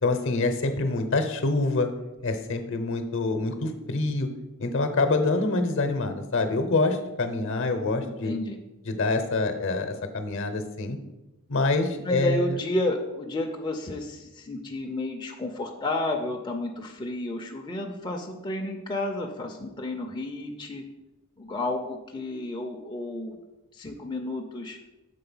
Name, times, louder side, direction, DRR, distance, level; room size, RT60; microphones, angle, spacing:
voice 1, 0.0-1.9 2.2-4.3 4.6-8.3 8.9-11.0 11.5-12.5, left 3 dB, 60° left, 8 dB, 0.8 m, -26 dB
voice 2, 8.0-8.6 12.0-20.8 21.4-23.4 23.7-24.8, left 2 dB, 20° left, 1 dB, 0.5 m, -31 dB
6.7 x 4.0 x 5.5 m, 0.99 s
head